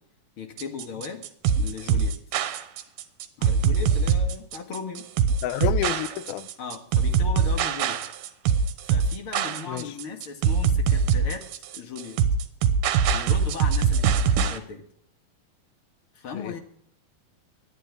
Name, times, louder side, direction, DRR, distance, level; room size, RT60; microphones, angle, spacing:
voice 1, 0.4-1.2 1.6-2.1 3.4-5.0 6.6-8.0 8.9-11.4 11.7-12.2 13.1-14.8 16.2-16.6, left 5 dB, 45° left, 2.0 m, -37 dB
sound 1, 0.6-14.6, right 6 dB, 90° right, 3.0 m, -23 dB
voice 2, 5.4-6.5 9.7-9.9 16.3-16.6, left 13 dB, 85° left, 2.5 m, -29 dB
20.0 x 12.0 x 3.6 m
omnidirectional pair, 4.2 m